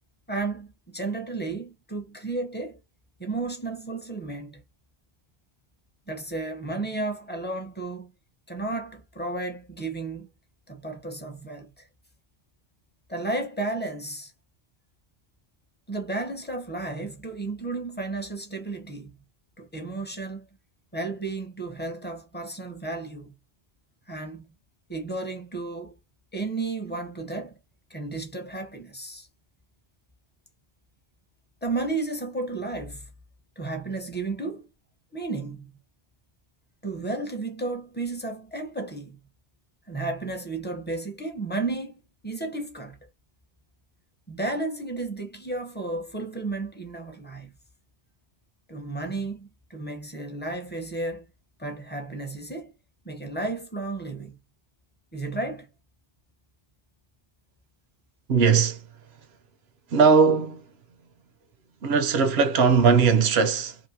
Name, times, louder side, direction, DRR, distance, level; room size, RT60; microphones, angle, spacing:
voice 1, 0.3-2.8 3.2-4.6 6.1-8.1 8.5-10.3 10.7-11.9 13.1-14.3 15.9-19.2 19.6-20.5 20.9-23.3 24.1-24.5 24.9-25.9 26.3-27.6 27.9-29.3 31.6-33.1 33.6-34.7 35.1-35.7 36.8-39.2 39.9-43.0 44.3-47.5 48.7-51.3 51.6-52.7 53.0-54.4 55.1-55.7, right 2 dB, 10° left, 0.7 m, -33 dB
voice 2, 58.3-58.9 59.9-60.7 61.8-63.8, right 5 dB, 70° right, 0.9 m, -19 dB
2.9 x 2.6 x 2.6 m
omnidirectional pair, 1.1 m